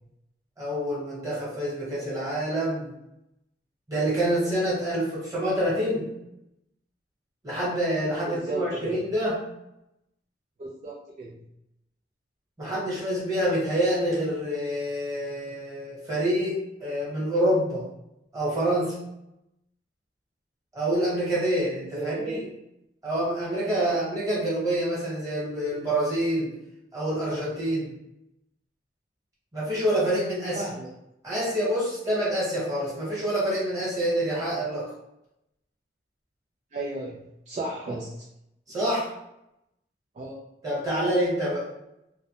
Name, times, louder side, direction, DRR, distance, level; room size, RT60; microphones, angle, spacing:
voice 1, 0.6-2.9 3.9-6.1 7.4-9.4 12.6-17.9 18.3-19.0 20.7-22.5 23.0-26.5 26.9-27.9 29.5-30.7 31.2-34.9 38.7-39.1 40.6-41.7, right 1 dB, 20° right, -8 dB, 1.1 m, -27 dB
voice 2, 8.3-9.0 10.6-11.4 21.9-22.4 23.8-23.9 30.6-30.9 36.7-38.1 40.2-40.4, right 2 dB, 40° right, -3 dB, 0.3 m, -34 dB
2.1 x 2.1 x 2.8 m, 0.84 s
head